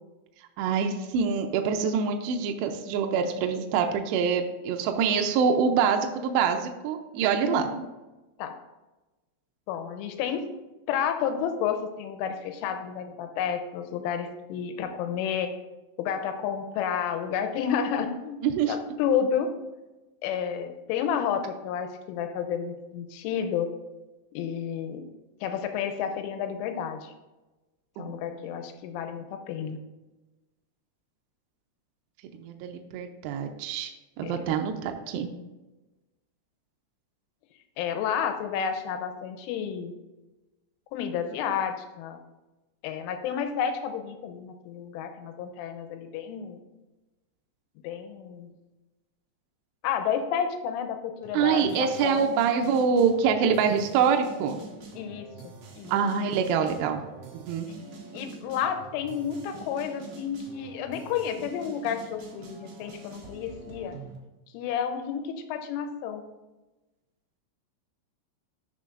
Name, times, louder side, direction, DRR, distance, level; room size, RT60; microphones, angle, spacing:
voice 1, 0.6-7.6 18.4-18.7 28.0-28.2 32.4-33.9 34.2-35.3 51.3-54.6 55.9-57.0 57.3-57.7, right 6 dB, 85° right, 4 dB, 2.5 m, -25 dB
voice 2, 7.4-7.8 8.4-8.5 9.7-10.5 10.9-15.5 16.0-19.5 20.2-23.7 24.3-25.0 25.4-27.1 28.0-29.8 34.2-34.4 37.8-39.9 40.9-42.2 42.8-46.6 47.8-48.5 49.8-52.3 55.0-55.9 58.1-64.0 64.5-66.2, left 8 dB, 90° left, 7 dB, 3.2 m, -31 dB
sound 1, 51.2-64.2, right 4 dB, 65° right, 2.0 m, -45 dB
11.5 x 5.9 x 2.5 m, 1.1 s
omnidirectional pair, 5.5 m